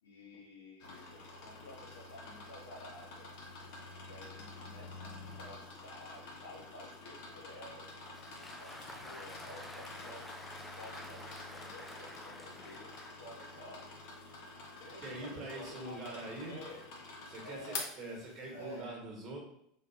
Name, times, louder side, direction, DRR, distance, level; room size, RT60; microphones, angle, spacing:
voice 1, 0.0-3.3 4.0-7.9 8.6-10.3 10.8-14.0 14.8-16.8 17.4-18.2 18.5-19.0, equal, 75° left, -3 dB, 1.2 m, -52 dB
sound 1, 0.8-18.8, left 3 dB, 55° left, 0.8 m, -48 dB
Applause, 7.5-13.7, left 1 dB, 5° left, 0.4 m, -50 dB
voice 2, 15.0-16.6 17.3-19.4, right 1 dB, 30° right, -2 dB, 1.4 m, -44 dB
3.6 x 3.0 x 3.1 m, 0.74 s
figure-of-eight pair, 80°, 0 cm